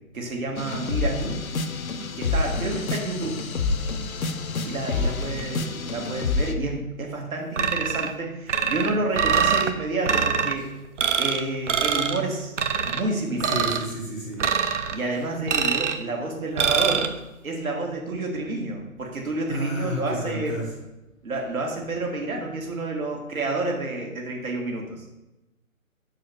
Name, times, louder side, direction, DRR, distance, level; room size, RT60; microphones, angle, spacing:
voice 1, 0.1-1.4 2.2-3.4 4.6-10.7 11.2-12.5 12.9-13.6 14.9-17.1 17.4-20.6 21.2-25.1, right 2 dB, 75° right, 0 dB, 2.2 m, -29 dB
sound 1, 0.6-6.5, left 3 dB, 75° left, 0.9 m, -28 dB
sound 2, 7.6-8.1 8.5-9.7 10.0-10.5 11.0-11.4 11.7-12.2 12.6-13.0 13.4-13.9 14.4-15.0 15.5-16.0 16.6-17.1, right 6 dB, 60° right, 0.7 m, -24 dB
voice 2, 13.5-14.4 19.5-20.6, equal, ahead, -10 dB, 0.5 m, -31 dB
5.3 x 4.8 x 6.2 m, 0.98 s
hypercardioid pair, 145°, 42 cm